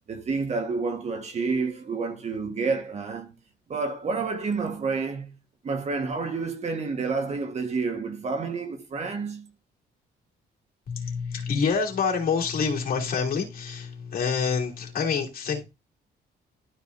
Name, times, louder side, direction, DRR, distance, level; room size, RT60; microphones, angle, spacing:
voice 1, 0.1-3.3 3.7-5.4 5.6-9.5, right 4 dB, 40° right, 1.5 m, -29 dB
voice 2, 10.9-15.6, left 5 dB, 55° left, 3.0 m, -27 dB
12.5 x 4.9 x 2.7 m
cardioid pair, 145°, 18 cm